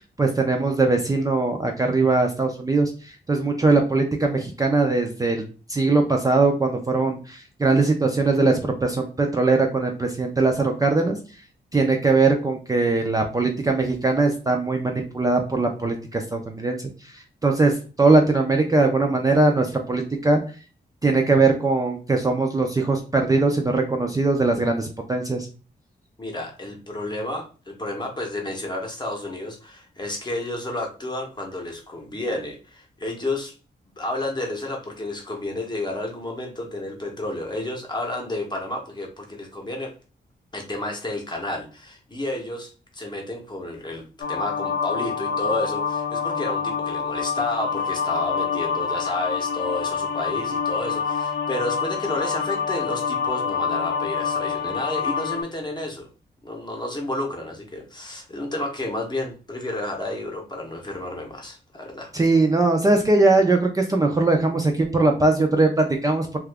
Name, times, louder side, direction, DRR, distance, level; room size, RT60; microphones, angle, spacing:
voice 1, 0.2-5.4 5.7-11.2 11.7-20.4 21.0-25.5 62.1-66.4, right 3 dB, 20° right, 2 dB, 0.4 m, -21 dB
voice 2, 26.2-33.5 34.0-39.9 40.5-56.1 56.4-62.1, left 1 dB, 25° left, 2 dB, 0.8 m, -31 dB
sound 1, 44.2-55.4, left 6 dB, 75° left, 0.6 m, -26 dB
2.8 x 2.3 x 3.3 m, 0.35 s
wide cardioid pair, 145°, 18 cm